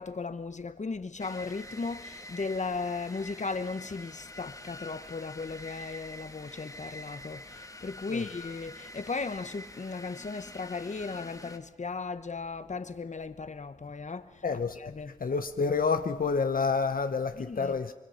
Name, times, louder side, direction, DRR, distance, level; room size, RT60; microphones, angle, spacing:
voice 1, 0.0-14.4 14.8-15.1 17.4-17.9, left 4 dB, 55° left, 1.0 m, -36 dB
sound 1, 1.2-11.6, left 1 dB, 25° left, 1.5 m, -46 dB
voice 2, 14.4-14.8 15.2-17.9, left 5 dB, 80° left, 0.8 m, -28 dB
25.5 x 23.5 x 5.7 m
wide cardioid pair, 75°, 15 cm